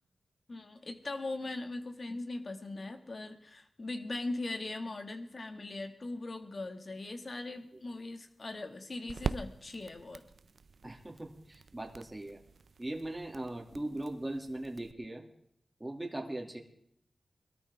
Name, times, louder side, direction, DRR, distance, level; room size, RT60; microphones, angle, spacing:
voice 1, 0.5-10.2, left 2 dB, 50° left, 6 dB, 2.1 m, -40 dB
sound 1, 7.0-14.9, right 4 dB, 70° right, 0.6 m, -44 dB
voice 2, 10.8-12.4 12.8-15.2 15.8-16.6, right 1 dB, 20° right, 1 dB, 2.6 m, -39 dB
23.0 x 13.5 x 3.6 m, 0.72 s
wide cardioid pair, 80°, 0 cm